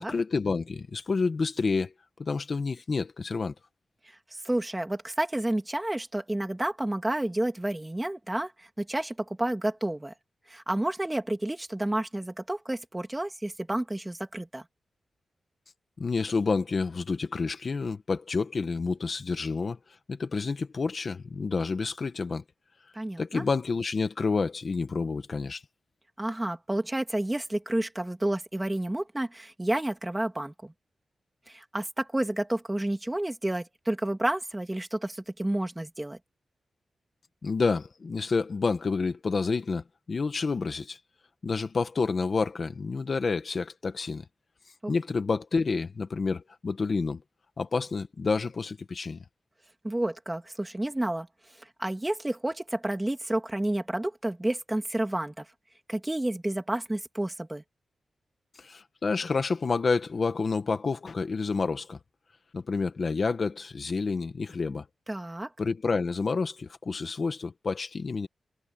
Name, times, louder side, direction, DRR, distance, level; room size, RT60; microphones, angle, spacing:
voice 1, 0.0-1.9 2.2-3.5 16.0-19.8 20.1-22.4 23.2-25.6 37.4-41.0 41.4-44.2 44.9-47.2 47.6-49.2 58.6-62.0 62.5-64.8 65.6-68.3, left 4 dB, 40° left, 1.5 m, -29 dB
voice 2, 4.4-10.1 10.5-14.6 22.9-23.4 26.2-30.7 31.5-36.2 44.8-44.9 49.8-51.3 51.8-55.4 55.9-57.6 65.1-65.5, right 1 dB, 10° right, 2.6 m, -30 dB
wide cardioid pair, 145°, 0 cm